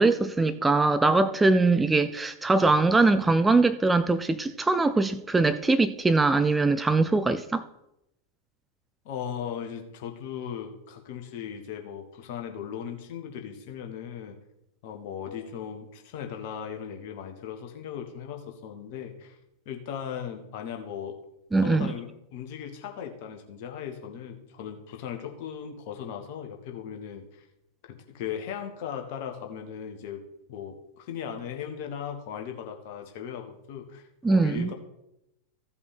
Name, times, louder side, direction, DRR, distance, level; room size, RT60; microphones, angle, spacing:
voice 1, 0.0-7.7 21.5-21.9 34.2-34.7, right 3 dB, 10° right, 0.4 m, -22 dB
voice 2, 9.0-14.4 14.8-19.4 19.6-21.1 21.6-27.5 27.9-30.2 30.5-34.7, left 8 dB, 50° left, 1.6 m, -38 dB
15.0 x 5.5 x 4.3 m
figure-of-eight pair, 90°, 0 cm